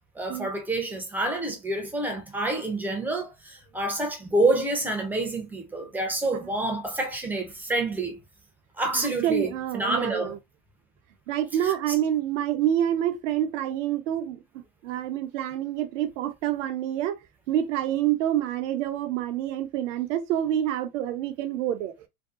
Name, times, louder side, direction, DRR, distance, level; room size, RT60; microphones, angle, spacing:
voice 1, 0.2-8.2 8.8-10.3 11.6-11.7, right 2 dB, 5° right, 0.5 m, -28 dB
voice 2, 8.9-10.4 11.3-14.4 14.8-17.2 17.5-21.9, right 11 dB, 55° right, 0.6 m, -27 dB
2.7 x 2.3 x 2.3 m
hypercardioid pair, 110°, 44 cm